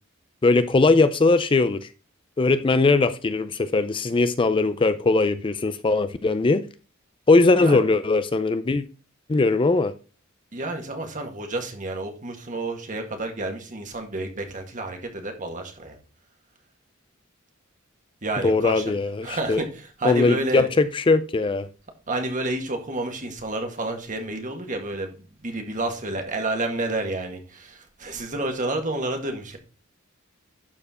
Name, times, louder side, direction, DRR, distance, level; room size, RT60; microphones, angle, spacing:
voice 1, 0.4-1.9 2.4-6.6 7.3-8.8 9.3-9.9 18.4-19.6 20.0-21.7, left 3 dB, 25° left, 0.4 m, -20 dB
voice 2, 10.5-16.0 18.2-18.9 19.2-20.7 22.1-29.6, right 2 dB, 40° right, 1.9 m, -30 dB
12.0 x 4.5 x 4.3 m
head